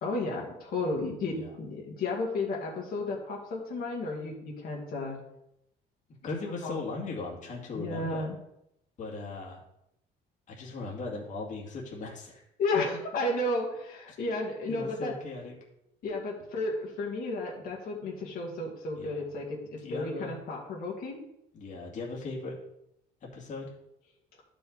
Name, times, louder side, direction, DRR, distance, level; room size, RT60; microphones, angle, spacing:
voice 1, 0.0-5.2 6.6-6.8 7.7-8.4 12.6-15.1 16.0-21.2, left 2 dB, 60° left, -2 dB, 2.2 m, -33 dB
voice 2, 6.2-8.2 9.0-9.6 10.5-12.4 14.1-14.2 14.7-15.5 19.0-19.2 19.8-20.4 21.5-22.6 23.2-23.7, left 3 dB, 45° left, -2 dB, 2.2 m, -38 dB
11.5 x 5.4 x 4.0 m, 0.81 s
cardioid pair, 110°, 17 cm